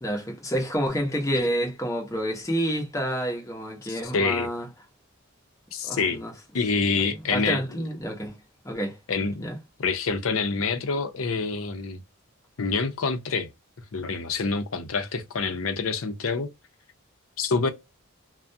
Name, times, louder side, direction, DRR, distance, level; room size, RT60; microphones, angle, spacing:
voice 1, 0.0-4.7 5.9-6.3 6.9-8.4 8.6-9.0 9.4-9.6, equal, 15° left, 0.7 m, -29 dB
voice 2, 3.9-4.5 5.7-6.2 6.5-7.6 9.1-9.5 9.8-12.0 12.6-13.5 13.9-16.5 17.4-17.7, left 4 dB, 75° left, 0.6 m, -26 dB
2.3 x 2.1 x 2.6 m
head